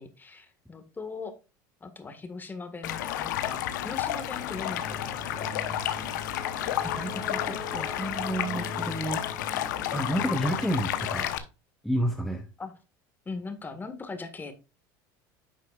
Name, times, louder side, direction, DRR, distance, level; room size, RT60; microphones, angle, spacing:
voice 1, 0.0-1.3 1.8-5.6 12.6-12.7 13.2-14.5, left 4 dB, 20° left, 9 dB, 1.7 m, -40 dB
Stream, 2.8-11.4, left 11 dB, 85° left, 1.0 m, -31 dB
sound 1, 4.4-10.7, equal, 30° right, 2.8 m, -43 dB
voice 2, 6.8-9.4 9.9-11.3 11.8-12.5, right 1 dB, ahead, 4 dB, 0.9 m, -31 dB
9.6 x 6.4 x 2.4 m, 0.30 s
supercardioid pair, 105°, 10 cm